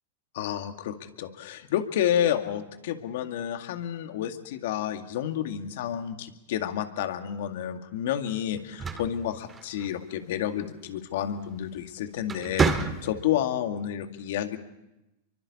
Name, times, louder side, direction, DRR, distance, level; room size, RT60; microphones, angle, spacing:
voice 1, 0.3-14.6, left 10 dB, 70° left, 6 dB, 2.2 m, -30 dB
sound 1, 8.6-10.1 11.6-11.8 12.2-13.4, right 4 dB, 20° right, 2.2 m, -29 dB
30.0 x 24.0 x 4.3 m, 0.92 s
hypercardioid pair, 110°, 0 cm